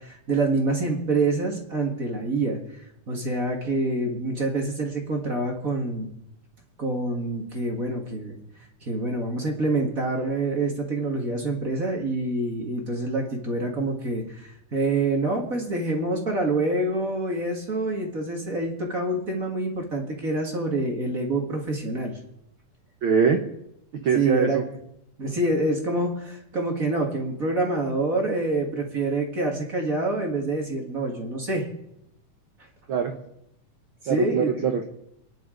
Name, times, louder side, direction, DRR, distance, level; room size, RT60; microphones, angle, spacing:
voice 1, 0.0-6.1 6.8-8.4 8.8-22.2 24.1-24.6 25.2-31.7 34.0-34.5, right 2 dB, 35° right, 1 dB, 1.7 m, -26 dB
voice 2, 23.0-23.4 24.0-24.6 32.9-33.1 34.1-34.8, right 6 dB, 75° right, 5 dB, 1.1 m, -22 dB
28.5 x 10.5 x 3.9 m, 0.80 s
omnidirectional pair, 3.7 m